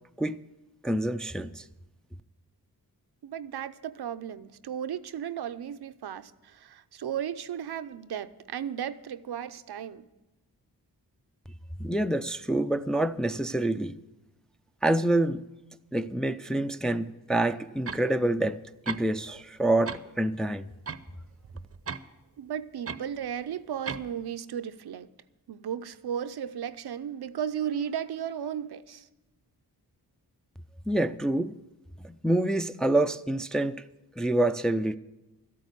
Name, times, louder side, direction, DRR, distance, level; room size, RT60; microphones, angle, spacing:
voice 1, 0.8-1.6 11.8-14.0 14.8-15.4 15.9-18.6 18.9-20.7 30.9-31.6 32.0-33.8 34.2-35.0, right 1 dB, ahead, 0.4 m, -27 dB
voice 2, 3.2-10.1 22.4-25.1 25.5-29.1, right 9 dB, 70° right, 0.6 m, -35 dB
sound 1, 17.9-18.1 18.8-19.4 19.7-20.1 20.9-22.0 22.9-23.0 23.8-24.1, right 5 dB, 35° right, 0.7 m, -37 dB
13.0 x 8.5 x 8.3 m
cardioid pair, 50°, 40 cm